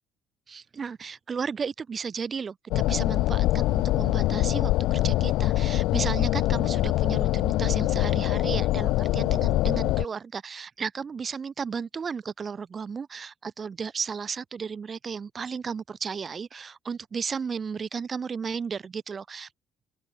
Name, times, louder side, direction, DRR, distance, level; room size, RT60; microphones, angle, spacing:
voice 1, 0.5-19.5, right 6 dB, 30° right, 2.9 m, -34 dB
sound 1, 2.7-10.0, left 17 dB, 75° left, 2.1 m, -24 dB
open air
cardioid pair, 135°, 0 cm